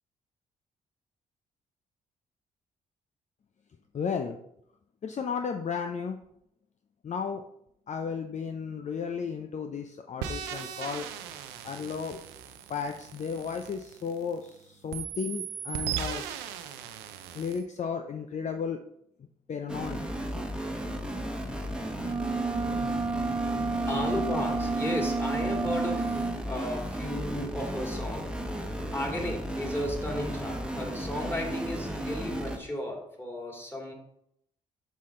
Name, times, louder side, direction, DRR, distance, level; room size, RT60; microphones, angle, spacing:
voice 1, 3.9-4.4 5.0-6.2 7.0-7.4 7.9-11.1 11.6-12.3 12.7-16.2 17.3-18.8 19.5-20.0 20.3-20.5, left 6 dB, 45° left, 5 dB, 0.7 m, -34 dB
sound 1, 10.2-14.5 14.9-17.6, right 9 dB, 85° right, 0.6 m, -38 dB
sound 2, 19.7-32.6, equal, 5° right, 1.3 m, -35 dB
sound 3, 22.0-26.4, right 4 dB, 20° right, 0.5 m, -30 dB
voice 2, 23.9-28.3 28.9-33.9, left 1 dB, 15° left, -1 dB, 2.9 m, -34 dB
6.2 x 5.7 x 3.8 m, 0.74 s
hypercardioid pair, 50°, 17 cm